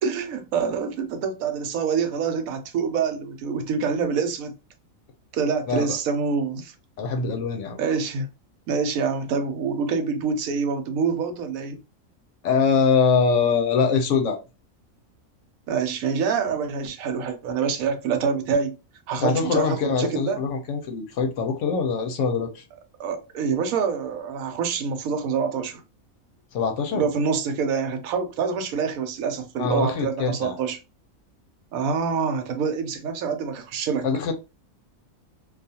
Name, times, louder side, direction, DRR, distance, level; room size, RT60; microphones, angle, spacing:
voice 1, 0.0-4.5 5.3-6.7 7.8-8.3 8.7-11.8 15.7-18.7 19.1-20.4 23.0-25.8 26.9-30.8 31.7-34.1, right 6 dB, 80° right, 1.0 m, -26 dB
voice 2, 7.0-7.8 12.4-14.4 19.2-22.6 26.5-27.0 29.6-30.6 34.0-34.3, left 5 dB, 70° left, 0.8 m, -23 dB
2.4 x 2.3 x 2.7 m
omnidirectional pair, 1.5 m